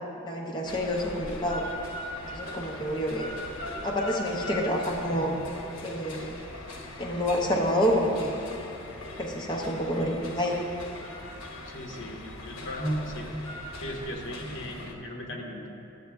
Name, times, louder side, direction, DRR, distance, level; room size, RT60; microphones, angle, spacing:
voice 1, 0.2-1.6 2.3-3.3 3.8-5.3 5.8-6.4 7.0-8.3 9.2-10.6, equal, 20° left, -2 dB, 0.6 m, -28 dB
sound 1, 0.6-14.9, left 1 dB, 85° left, 0.9 m, -40 dB
voice 2, 11.6-13.4 13.8-15.7, equal, 60° left, -1 dB, 1.1 m, -36 dB
11.5 x 7.6 x 2.3 m, 2.7 s
head